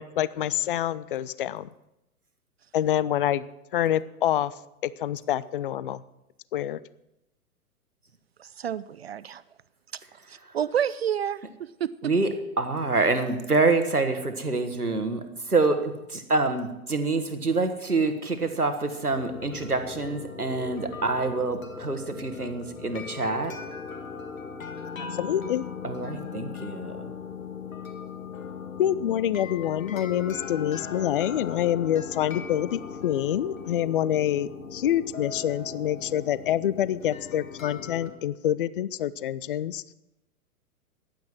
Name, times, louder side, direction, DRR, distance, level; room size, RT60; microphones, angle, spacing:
voice 1, 0.0-1.7 2.7-3.5 3.7-4.5 4.8-6.0 6.5-6.8 25.1-25.6 28.8-39.8, left 11 dB, 40° left, 19 dB, 0.5 m, -26 dB
voice 2, 8.4-9.4 10.3-11.4 11.8-12.1, right 9 dB, 45° right, 18 dB, 0.4 m, -29 dB
voice 3, 12.6-23.5 25.8-27.1, right 3 dB, 85° right, 8 dB, 1.7 m, -26 dB
sound 1, 19.1-38.1, left 6 dB, 65° left, 1.9 m, -39 dB
15.0 x 10.5 x 6.1 m, 0.89 s
figure-of-eight pair, 110°, 44 cm